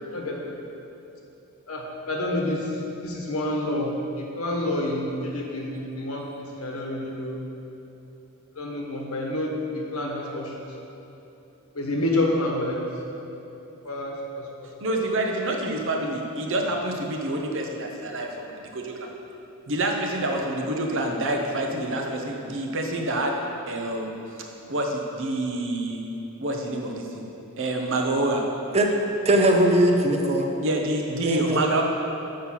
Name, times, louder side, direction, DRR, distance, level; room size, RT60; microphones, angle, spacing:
voice 1, 0.1-0.5 1.7-2.6 3.0-7.4 8.6-9.5 9.9-10.5 11.8-12.8 13.8-14.1, left 1 dB, 75° left, -1 dB, 1.2 m, -28 dB
voice 2, 14.8-19.1 19.7-23.4 23.7-24.2 24.7-26.0 26.4-27.3 27.6-28.4 30.6-31.8, right 1 dB, 60° right, 1 dB, 0.8 m, -27 dB
voice 3, 29.3-30.5 31.2-31.8, right 1 dB, 30° right, 2 dB, 0.6 m, -20 dB
6.4 x 5.7 x 5.8 m, 3.0 s
head